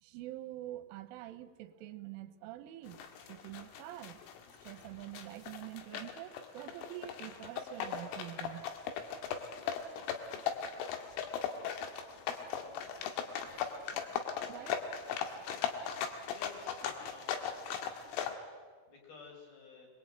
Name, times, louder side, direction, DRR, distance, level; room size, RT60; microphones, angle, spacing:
voice 1, 0.0-4.2 4.6-8.7 14.5-14.9, right 14 dB, 80° right, 12 dB, 3.6 m, -46 dB
sound 1, 2.9-18.3, left 8 dB, 80° left, 4.3 m, -38 dB
voice 2, 12.6-13.0 16.3-17.4 18.9-19.9, left 4 dB, 50° left, 1 dB, 7.1 m, -54 dB
26.0 x 22.0 x 9.0 m, 1.5 s
omnidirectional pair, 5.7 m